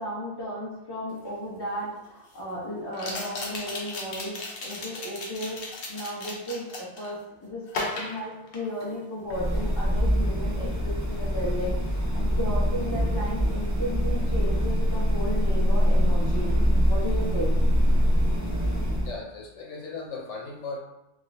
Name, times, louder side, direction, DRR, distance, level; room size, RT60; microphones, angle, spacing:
voice 1, 0.0-5.6 5.9-16.6 16.9-17.5, equal, 20° left, -6 dB, 0.9 m, -34 dB
sound 1, 1.2-1.3 2.9-7.1 7.7-9.0 9.3-9.6, left 2 dB, 60° left, 0.9 m, -36 dB
sound 2, 9.3-19.1, equal, 20° right, 0.4 m, -24 dB
voice 2, 19.0-20.8, left 3 dB, 80° left, -2 dB, 1.2 m, -37 dB
3.7 x 3.2 x 2.6 m, 0.90 s
omnidirectional pair, 1.2 m